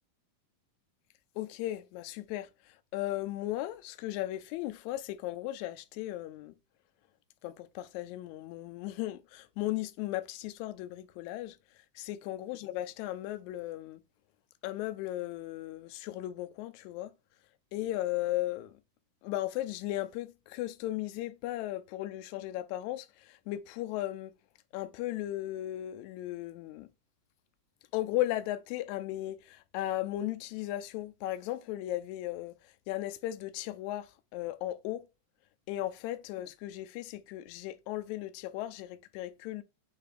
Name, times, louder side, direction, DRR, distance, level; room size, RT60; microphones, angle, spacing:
voice 1, 1.4-2.5 2.9-6.5 7.4-11.6 11.9-14.0 14.6-17.1 17.7-18.7 19.2-24.3 24.7-26.9 27.9-32.6 32.9-35.0 35.7-39.6, left 15 dB, 80° left, 1.8 m, -36 dB
6.5 x 2.5 x 3.3 m
omnidirectional pair, 3.4 m